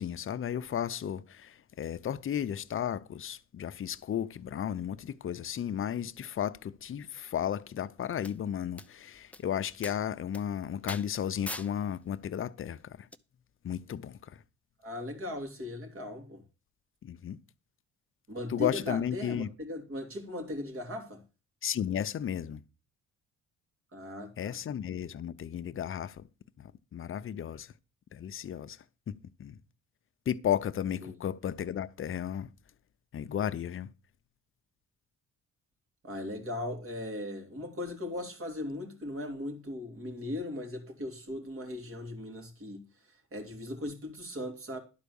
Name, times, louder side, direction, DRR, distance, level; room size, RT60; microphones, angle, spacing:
voice 1, 0.0-13.1 13.6-14.2 17.0-17.4 18.5-19.5 21.6-22.6 24.4-26.3 26.6-27.7 28.1-28.8 29.4-29.6 30.3-32.5 33.1-33.9, left 9 dB, 45° left, 0.7 m, -34 dB
sound 1, 8.2-8.3 8.8-8.9 9.3-9.4 9.8-10.0 10.3-10.4 10.9-11.1 11.5-11.7 13.1-13.2, left 2 dB, 5° left, 0.7 m, -40 dB
voice 2, 14.8-16.4 18.3-21.2 23.9-24.6 31.0-31.1 36.0-44.8, left 1 dB, 45° right, 3.2 m, -38 dB
11.5 x 4.6 x 7.0 m
cardioid pair, 90°, 30 cm